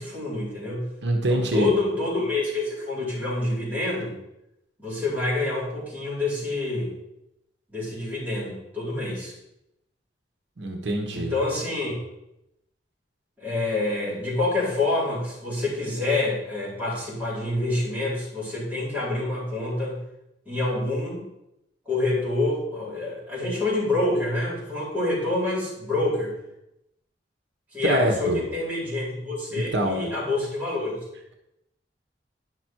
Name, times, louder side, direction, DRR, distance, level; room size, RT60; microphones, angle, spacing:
voice 1, 0.0-0.8 1.3-4.2 4.8-6.9 7.7-9.3 11.1-12.0 13.4-20.0 20.5-21.2 21.9-26.3 27.7-31.0, left 2 dB, 10° right, -8 dB, 4.2 m, -27 dB
voice 2, 1.0-1.7 10.6-11.4 27.8-28.4 29.5-30.1, right 1 dB, 75° right, 3 dB, 1.2 m, -24 dB
10.5 x 6.1 x 4.6 m, 0.86 s
head